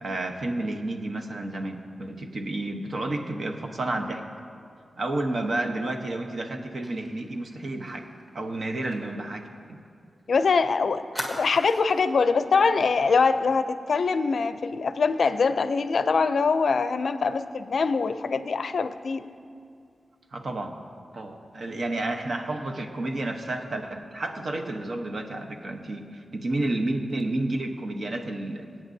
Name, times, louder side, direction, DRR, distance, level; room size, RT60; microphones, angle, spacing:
voice 1, 0.0-4.2 5.0-8.1 8.3-9.8 20.3-20.8 21.1-28.7, right 2 dB, 55° right, 3 dB, 1.0 m, -31 dB
Fire, 6.8-10.3 10.5-10.6 11.1-12.1 12.5-12.7 13.0-13.3, equal, 10° right, 1.7 m, -40 dB
voice 2, 10.3-11.0 11.3-19.2, left 4 dB, 70° left, 11 dB, 0.4 m, -23 dB
24.5 x 8.6 x 2.7 m, 2.3 s
wide cardioid pair, 105°, 0 cm